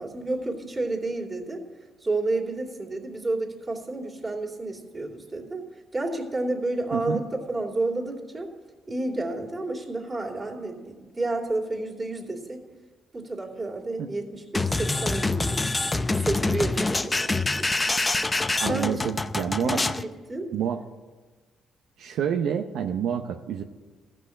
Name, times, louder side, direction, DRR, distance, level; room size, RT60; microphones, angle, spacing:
voice 1, 0.0-1.6 2.0-5.6 5.9-8.5 8.9-12.6 13.1-15.7 16.1-17.5 18.6-19.1 19.6-20.5, right 2 dB, 25° right, 0 dB, 2.7 m, -30 dB
sound 1, 14.5-20.0, left 2 dB, 20° left, 0.6 m, -26 dB
voice 2, 18.6-19.8 20.5-20.8 22.0-23.6, right 8 dB, 80° right, 5 dB, 0.7 m, -28 dB
15.0 x 6.2 x 9.8 m, 1.3 s
cardioid pair, 90°, 0 cm